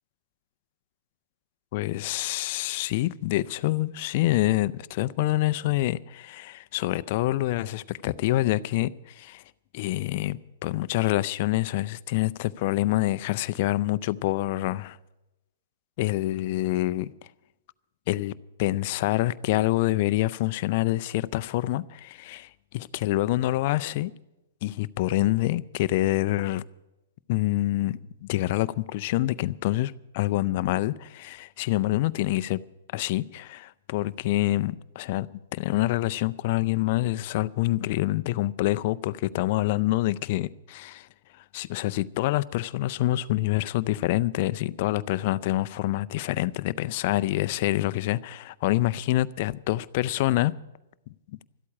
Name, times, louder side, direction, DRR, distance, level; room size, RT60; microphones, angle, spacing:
voice 1, 1.7-9.4 9.7-15.0 16.0-17.1 18.1-18.3 18.6-24.1 24.6-26.6 27.3-32.6 32.9-35.3 35.5-41.1 41.5-50.5, left 16 dB, 50° left, 0.5 m, -26 dB
13.0 x 8.5 x 9.9 m
hypercardioid pair, 130°, 0 cm